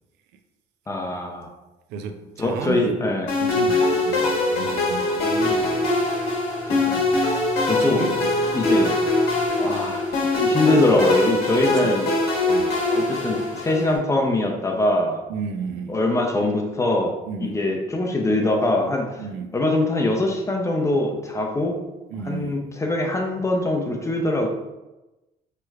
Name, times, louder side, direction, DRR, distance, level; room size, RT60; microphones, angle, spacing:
voice 1, 0.9-1.5 2.4-3.3 5.2-5.7 6.7-8.1 8.5-9.0 9.6-10.0 10.3-12.1 12.9-15.2 15.9-17.1 17.4-19.2 19.5-21.8 22.3-24.5, left 2 dB, 15° left, 2 dB, 0.5 m, -23 dB
voice 2, 1.9-3.0 3.4-5.6 7.8-8.9 11.6-11.9 12.5-12.8 15.3-16.0 17.2-17.7 19.2-19.6 22.1-22.6, right 6 dB, 90° right, 7 dB, 0.4 m, -33 dB
sound 1, 3.3-14.0, left 2 dB, 70° left, 1.0 m, -22 dB
sound 2, 5.3-9.5, left 1 dB, 50° right, 0.9 m, -37 dB
3.2 x 3.0 x 2.3 m, 1.0 s
cardioid pair, 110°, 17 cm